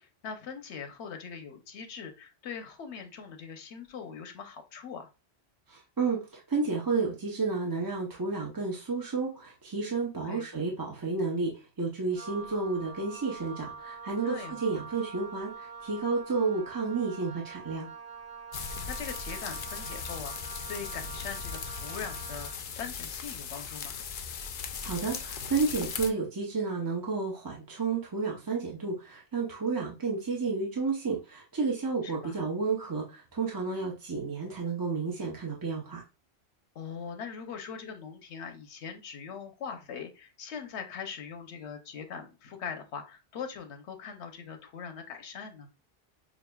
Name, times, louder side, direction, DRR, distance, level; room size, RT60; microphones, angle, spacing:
voice 1, 0.0-5.1 10.2-10.5 14.2-14.6 18.9-24.0 32.0-32.4 36.7-45.7, left 6 dB, 85° left, 6 dB, 1.0 m, -41 dB
voice 2, 5.7-17.9 24.8-36.0, right 4 dB, 25° right, -3 dB, 0.6 m, -31 dB
Wind instrument woodwind instrument, 12.1-22.7, right 5 dB, 60° right, 0.7 m, -45 dB
sound 1, 18.5-26.1, left 6 dB, 60° left, 0.6 m, -38 dB
6.1 x 2.5 x 2.2 m, 0.29 s
omnidirectional pair, 1.1 m